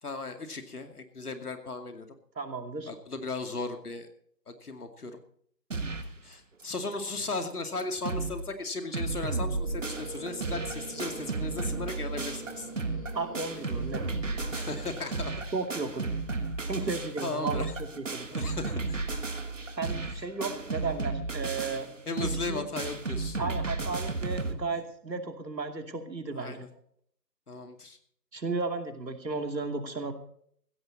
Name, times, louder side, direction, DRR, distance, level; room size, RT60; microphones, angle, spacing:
voice 1, 0.0-2.1 2.9-4.1 4.5-5.2 6.2-12.7 14.5-15.3 17.2-17.7 18.3-19.2 22.1-23.4 26.3-26.7 27.5-28.0, left 3 dB, 65° left, 6 dB, 2.5 m, -36 dB
voice 2, 2.4-2.9 13.1-14.0 15.5-16.1 16.7-18.3 19.8-21.9 22.2-22.6 23.4-26.7 28.3-30.1, right 3 dB, 85° right, 6 dB, 2.7 m, -34 dB
sound 1, 5.7-6.2 6.6-6.7 6.9-7.0 7.5-7.6 7.8-8.4 8.7-24.5, right 3 dB, 50° right, 1.5 m, -33 dB
sound 2, 9.5-15.1, right 2 dB, 20° left, 2.2 m, -44 dB
16.0 x 13.5 x 4.1 m, 0.63 s
figure-of-eight pair, 175°, 49 cm